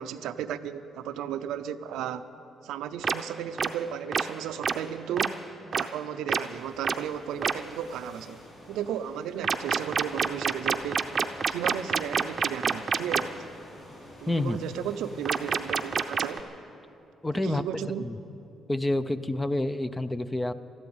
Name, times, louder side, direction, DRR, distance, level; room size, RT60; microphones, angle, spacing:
voice 1, 0.0-2.2 2.6-5.4 5.7-8.4 8.7-11.1 11.4-13.5 14.2-16.4 17.4-18.1, right 9 dB, 90° right, 11 dB, 0.6 m, -34 dB
sound 1, 3.0-3.1 3.6-3.7 4.1-4.2 4.6-4.7 5.2-5.3 5.7-5.8 6.3-6.4 6.8-7.0 7.4-7.5 9.4-13.2 15.2-16.4, right 6 dB, 45° right, 0.7 m, -26 dB
sound 2, 6.5-16.1, left 1 dB, 55° left, 4.0 m, -50 dB
voice 2, 14.3-14.6 17.2-17.6 18.0-18.2 18.7-20.5, left 1 dB, 15° left, 13 dB, 0.6 m, -28 dB
13.5 x 12.0 x 8.8 m, 2.8 s
cardioid pair, 90°, 0 cm